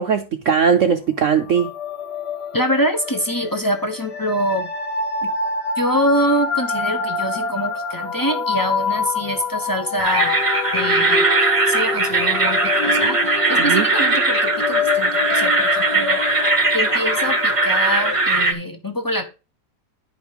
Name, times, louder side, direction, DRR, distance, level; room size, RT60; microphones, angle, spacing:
voice 1, 0.0-1.7 13.6-13.9, right 6 dB, 60° right, 0.8 m, -19 dB
sound 1, 1.4-18.2, left 4 dB, 65° left, 1.7 m, -26 dB
voice 2, 2.5-4.7 5.2-5.3 5.8-10.4 10.7-11.2 11.7-16.2 16.7-19.2, equal, 20° left, 0.6 m, -24 dB
sound 2, 10.0-18.5, right 3 dB, 20° right, 1.1 m, -19 dB
10.5 x 5.1 x 4.7 m
omnidirectional pair, 2.0 m